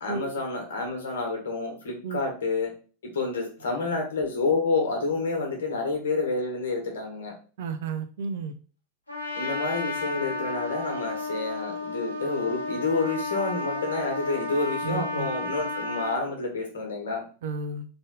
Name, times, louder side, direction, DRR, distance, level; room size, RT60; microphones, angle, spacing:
voice 1, 0.0-2.7 3.1-7.3 9.3-17.2, left 3 dB, 60° left, 1 dB, 1.7 m, -29 dB
voice 2, 7.6-8.5 14.8-15.3 17.4-17.8, right 5 dB, 55° right, 9 dB, 0.6 m, -32 dB
Trumpet, 9.1-16.2, left 2 dB, 85° left, 1.3 m, -32 dB
3.8 x 3.4 x 3.8 m, 0.39 s
figure-of-eight pair, 90°, 0 cm